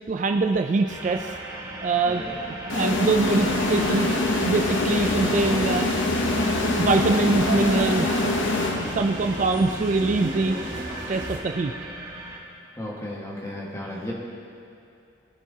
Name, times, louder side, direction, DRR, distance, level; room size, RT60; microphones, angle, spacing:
voice 1, 0.1-1.4 1.8-2.3 2.7-4.1 4.5-5.9 6.6-8.2 8.8-10.6 11.1-11.7, right 3 dB, 40° right, 5 dB, 0.3 m, -23 dB
sound 1, 0.9-12.4, right 1 dB, 20° right, 1.7 m, -38 dB
sound 2, 2.7-9.3, left 2 dB, 65° left, 0.8 m, -25 dB
sound 3, 3.2-11.4, right 1 dB, 75° right, 1.9 m, -34 dB
voice 2, 12.8-14.1, left 1 dB, 15° left, -4 dB, 1.5 m, -34 dB
22.0 x 7.4 x 2.8 m, 2.6 s
head